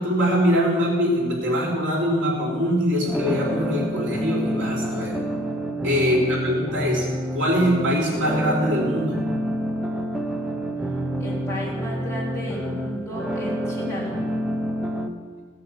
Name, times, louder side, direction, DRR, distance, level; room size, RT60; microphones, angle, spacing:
voice 1, 0.0-5.2 5.8-7.1 7.3-9.2, equal, 85° right, -3 dB, 3.4 m, -23 dB
sound 1, 3.1-15.1, equal, ahead, 0.8 m, -28 dB
voice 2, 6.0-6.3 11.2-14.2, equal, 15° left, -6 dB, 3.0 m, -34 dB
15.5 x 6.5 x 7.2 m, 1.5 s
head